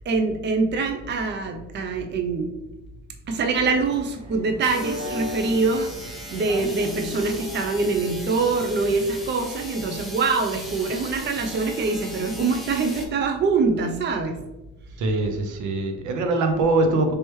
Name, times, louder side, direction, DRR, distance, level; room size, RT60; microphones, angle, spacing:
voice 1, 0.0-2.6 3.3-14.4, right 4 dB, 35° right, 4 dB, 0.5 m, -24 dB
sound 1, 3.6-9.3, left 1 dB, 55° right, 1.2 m, -38 dB
sound 2, 4.6-13.1, equal, ahead, 0.6 m, -39 dB
voice 2, 15.0-17.1, right 2 dB, 80° right, 5 dB, 0.6 m, -22 dB
3.3 x 2.9 x 3.0 m, 0.99 s
cardioid pair, 90°, 30 cm